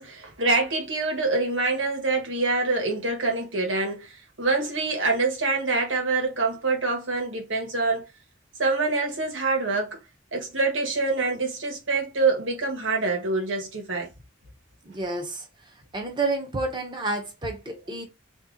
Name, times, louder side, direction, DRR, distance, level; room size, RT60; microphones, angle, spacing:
voice 1, 0.0-8.0 8.6-10.0 10.3-14.1, right 3 dB, 90° right, 1.6 m, -25 dB
voice 2, 14.8-15.5 15.9-18.0, right 2 dB, 25° right, 1.1 m, -29 dB
3.4 x 3.1 x 3.9 m
head